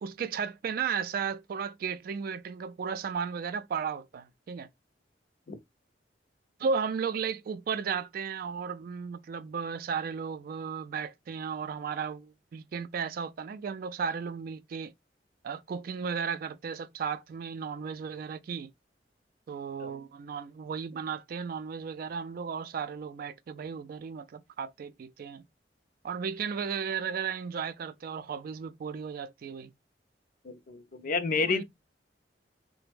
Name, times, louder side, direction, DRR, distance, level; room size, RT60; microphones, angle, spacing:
voice 1, 0.0-4.7 6.6-14.9 15.4-18.7 19.5-25.4 26.0-29.7 31.4-31.6, right 6 dB, 55° right, 0.3 m, -35 dB
voice 2, 30.4-31.6, left 4 dB, 50° left, 0.5 m, -30 dB
3.2 x 2.1 x 3.2 m
head